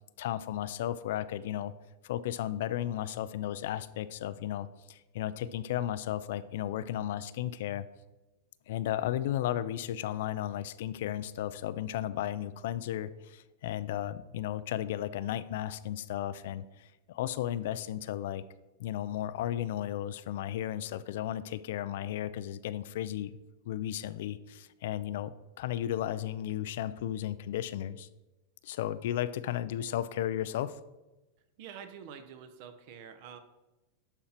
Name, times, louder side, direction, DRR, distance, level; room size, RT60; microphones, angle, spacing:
voice 1, 0.2-1.7 2.0-7.9 8.7-18.4 18.8-23.3 23.7-28.1 28.6-30.8, left 12 dB, 60° left, 14 dB, 0.4 m, -34 dB
voice 2, 31.6-33.4, right 7 dB, 45° right, 9 dB, 0.9 m, -47 dB
11.5 x 4.3 x 5.8 m, 1.1 s
supercardioid pair, 170°, 0 cm